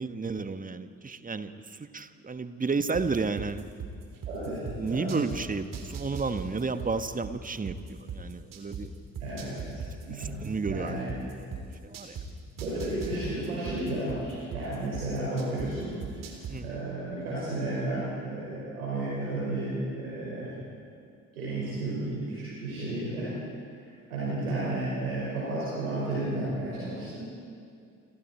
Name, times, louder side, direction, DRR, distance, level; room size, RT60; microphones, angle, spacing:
voice 1, 0.0-3.6 4.7-8.9 9.7-11.0 11.3-11.5 11.8-12.2 16.5-16.8, right 4 dB, 20° right, 11 dB, 1.3 m, -32 dB
sound 1, 2.9-5.4 5.7-8.8 9.1-12.2 12.6-15.7 16.0-16.5, right 8 dB, 50° right, 3.6 m, -38 dB
voice 2, 4.3-5.2 9.2-10.4 10.7-11.1 12.6-16.3 16.6-20.5 21.3-23.3 24.1-27.3, right 2 dB, 80° right, -8 dB, 5.3 m, -33 dB
29.0 x 25.5 x 4.5 m, 2.3 s
figure-of-eight pair, 45°, 42 cm